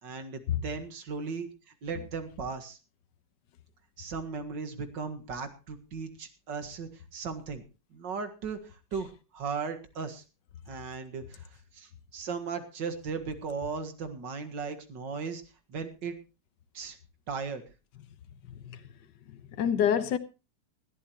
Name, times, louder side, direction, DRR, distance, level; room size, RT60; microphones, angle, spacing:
voice 1, 0.0-2.8 4.0-7.6 7.9-10.2 10.7-15.4 15.7-16.1 16.7-17.0 17.3-17.6, right 5 dB, 85° right, 2.4 m, -37 dB
voice 2, 19.3-20.2, left 9 dB, 75° left, 1.7 m, -27 dB
20.0 x 13.5 x 3.0 m
omnidirectional pair, 1.9 m